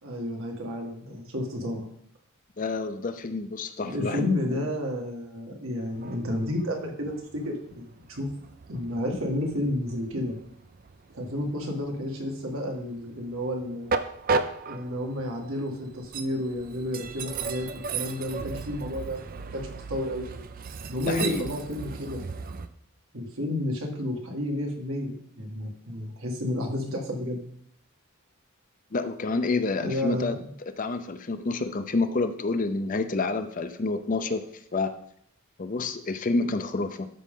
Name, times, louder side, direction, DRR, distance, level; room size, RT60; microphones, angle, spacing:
voice 1, 0.0-1.9 3.8-8.3 8.7-10.4 11.1-13.9 14.6-20.4 20.9-22.3 23.1-27.4 29.8-30.5, left 1 dB, 70° right, 1 dB, 1.9 m, -31 dB
voice 2, 2.6-4.7 21.0-21.5 28.9-34.4 34.7-34.9 35.6-37.1, left 3 dB, 40° left, 10 dB, 0.5 m, -29 dB
Train, 5.9-22.7, right 4 dB, 40° right, 0.5 m, -36 dB
12.5 x 5.1 x 3.7 m, 0.66 s
head